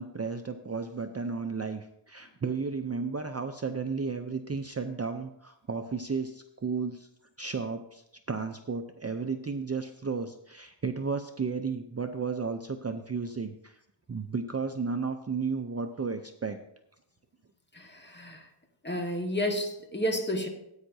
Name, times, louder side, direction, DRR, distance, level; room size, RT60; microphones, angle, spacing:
voice 1, 0.0-7.1 7.4-13.8 14.1-16.6, right 5 dB, 30° right, 6 dB, 0.5 m, -33 dB
voice 2, 17.7-18.5 18.8-20.5, equal, 20° left, 3 dB, 1.5 m, -31 dB
14.5 x 8.9 x 2.7 m, 0.78 s
wide cardioid pair, 90°, 49 cm